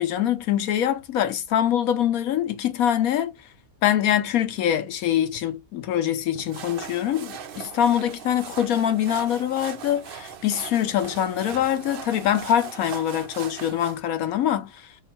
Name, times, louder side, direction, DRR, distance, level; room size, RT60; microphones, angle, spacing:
voice 1, 0.0-3.3 3.8-14.9, left 10 dB, 65° left, 1.1 m, -24 dB
sound 1, 6.4-14.0, right 8 dB, 70° right, 0.5 m, -39 dB
4.6 x 2.5 x 4.2 m
omnidirectional pair, 1.7 m